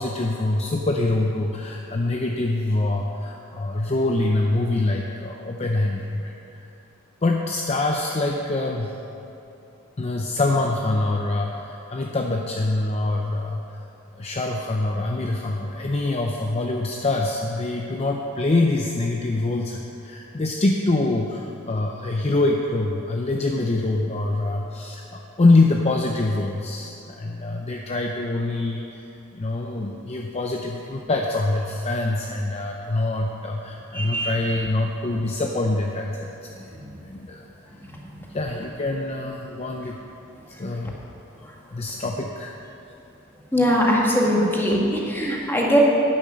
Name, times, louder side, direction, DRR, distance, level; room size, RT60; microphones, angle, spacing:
voice 1, 0.0-6.3 7.2-8.9 10.0-13.6 14.1-29.0 29.3-36.7 37.0-37.5 38.3-40.0 40.6-41.0 41.7-42.5, left 2 dB, 30° left, 1 dB, 0.6 m, -24 dB
voice 2, 33.9-34.3 36.7-36.9 37.8-38.0 41.4-41.5 43.5-45.8, equal, 10° left, -3 dB, 1.8 m, -21 dB
10.5 x 8.9 x 6.3 m, 2.9 s
head